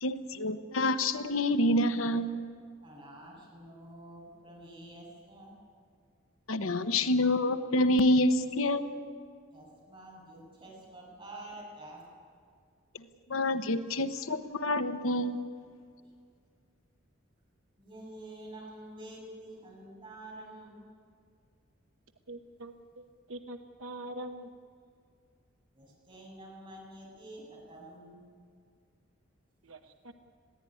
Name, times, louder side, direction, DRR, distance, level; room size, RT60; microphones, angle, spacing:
voice 1, 0.0-2.3 6.5-8.9 13.3-15.4, left 1 dB, 80° left, 10 dB, 1.0 m, -27 dB
voice 2, 2.8-5.5 9.5-12.0 17.8-20.8 25.7-28.2, right 1 dB, 25° right, -3 dB, 7.4 m, -48 dB
voice 3, 22.3-24.5 29.6-30.1, right 1 dB, 75° right, 6 dB, 1.0 m, -44 dB
21.5 x 15.5 x 9.8 m, 2.1 s
head